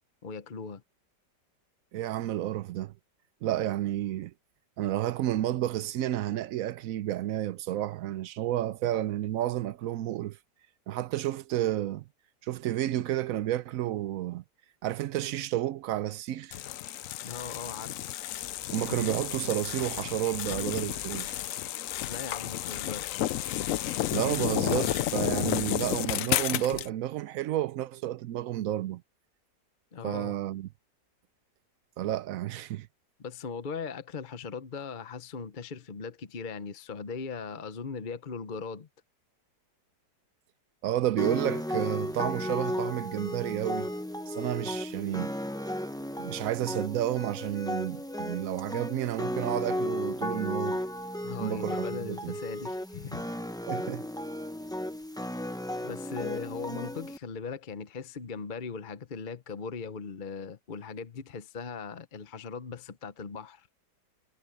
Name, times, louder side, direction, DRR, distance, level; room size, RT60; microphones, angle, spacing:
voice 1, 0.2-0.8 17.2-18.1 22.0-23.3 29.9-30.3 33.2-38.9 51.2-53.3 55.8-63.7, left 5 dB, 40° left, 0.8 m, -39 dB
voice 2, 1.9-2.9 3.4-4.3 4.8-10.4 10.9-12.0 12.4-14.4 14.8-16.6 18.7-21.4 24.1-29.0 30.0-30.7 32.0-32.9 40.8-43.9 44.3-45.3 46.2-50.8 51.4-52.3 53.7-54.1, right 13 dB, 70° right, 0.8 m, -31 dB
sound 1, 16.5-26.9, left 13 dB, 70° left, 0.8 m, -32 dB
sound 2, 41.2-57.2, equal, 5° left, 0.6 m, -34 dB
omnidirectional pair, 1.8 m